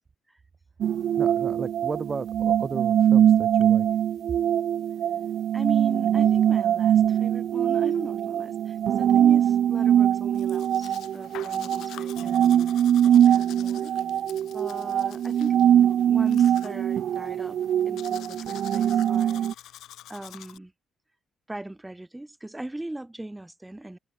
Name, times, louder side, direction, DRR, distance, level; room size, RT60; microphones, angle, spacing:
sound 1, 0.8-19.5, right 10 dB, 65° right, 1.9 m, -22 dB
voice 1, 1.2-3.9, right 5 dB, 35° right, 2.4 m, -34 dB
voice 2, 5.5-12.5 13.0-13.9 14.5-17.6 17.8-19.5 20.1-20.7 21.5-24.0, right 1 dB, 10° right, 4.6 m, -39 dB
Domestic sounds home sounds, 10.3-20.6, left 13 dB, 85° left, 7.7 m, -47 dB
cardioid pair, 90°, 0 cm